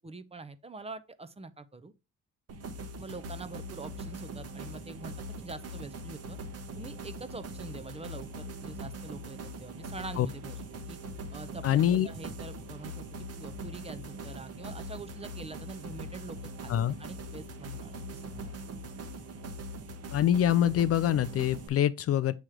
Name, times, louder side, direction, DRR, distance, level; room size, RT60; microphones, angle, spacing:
voice 1, 0.0-1.9 3.0-6.4 6.7-10.6 10.9-11.0 11.3-13.0 13.4-16.7 17.0-18.5, right 3 dB, 20° right, 0.6 m, -45 dB
sound 1, 2.5-21.7, right 1 dB, 55° right, 1.1 m, -42 dB
voice 2, 11.6-12.1 16.7-16.9 20.1-22.3, left 11 dB, 50° left, 0.4 m, -25 dB
7.5 x 3.0 x 4.8 m
cardioid pair, 90°, 30 cm